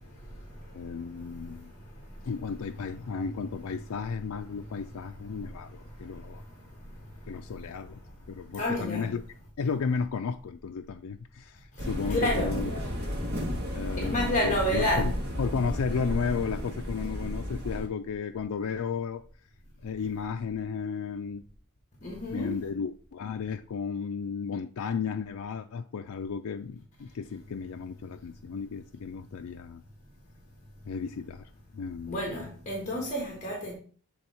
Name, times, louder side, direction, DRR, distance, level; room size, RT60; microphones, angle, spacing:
voice 1, 0.7-1.7 2.2-6.4 7.3-8.0 8.3-9.2 9.6-12.7 13.7-15.1 15.4-19.2 19.8-21.4 22.3-29.8 30.9-32.2, left 5 dB, 75° left, 0.4 m, -33 dB
voice 2, 8.6-9.1 12.1-12.6 14.0-15.1 22.0-22.6 32.1-33.7, equal, 35° left, 1.4 m, -29 dB
in the Metro ambience, 11.8-17.9, equal, 50° right, 1.9 m, -33 dB
8.0 x 3.5 x 4.3 m
head